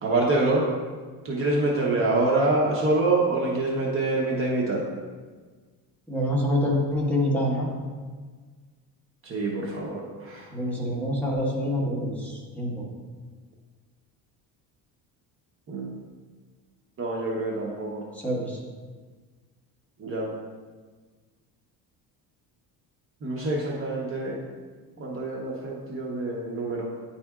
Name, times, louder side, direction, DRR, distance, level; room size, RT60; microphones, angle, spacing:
voice 1, 0.0-0.7 1.2-4.8 9.2-10.5 15.7-16.0 17.0-18.0 20.0-20.3 23.2-24.4 25.0-26.9, right 2 dB, 35° right, -3 dB, 0.9 m, -26 dB
voice 2, 6.1-7.7 10.5-12.8 18.1-18.6, equal, 5° left, -5 dB, 1.3 m, -26 dB
9.6 x 4.2 x 2.4 m, 1.5 s
cardioid pair, 135°, 38 cm